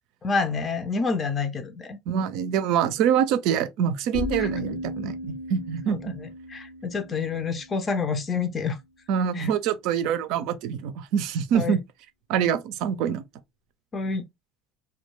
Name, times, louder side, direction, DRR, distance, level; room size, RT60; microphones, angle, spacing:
voice 1, 0.2-2.0 4.4-4.5 5.9-8.8 9.3-9.5 11.5-11.8 13.9-14.2, left 4 dB, 35° left, 0.5 m, -28 dB
voice 2, 2.1-6.1 9.1-11.8 12.3-13.2, right 8 dB, 65° right, 0.4 m, -25 dB
sound 1, 4.1-8.0, left 1 dB, 80° left, 0.6 m, -35 dB
2.2 x 2.2 x 3.0 m
hypercardioid pair, 75°, 0 cm